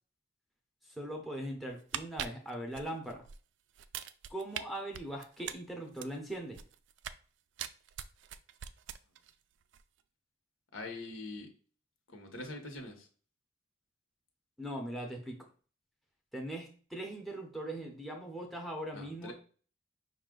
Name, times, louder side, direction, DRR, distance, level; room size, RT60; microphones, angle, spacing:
voice 1, 0.9-3.2 4.3-6.6 14.6-15.4 16.3-19.3, right 1 dB, ahead, 0 dB, 0.6 m, -40 dB
sound 1, 1.7-3.4 3.7-4.6 4.9-7.2 7.6-9.3 9.6-9.8, right 10 dB, 65° right, 0.3 m, -42 dB
voice 2, 10.7-11.5 12.1-13.1 18.9-19.3, left 2 dB, 80° left, 4 dB, 1.1 m, -43 dB
5.5 x 2.4 x 3.8 m, 0.41 s
head